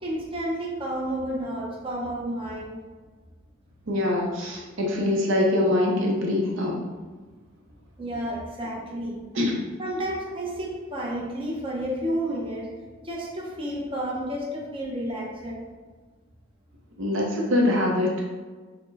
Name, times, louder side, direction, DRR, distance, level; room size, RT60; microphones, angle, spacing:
voice 1, 0.0-2.8 8.0-9.2 9.8-12.7 13.0-15.6, right 1 dB, 25° right, -3 dB, 0.7 m, -31 dB
voice 2, 3.9-6.8 9.3-9.6 17.0-18.3, left 1 dB, 65° right, -1 dB, 0.6 m, -24 dB
4.2 x 2.1 x 4.0 m, 1.4 s
head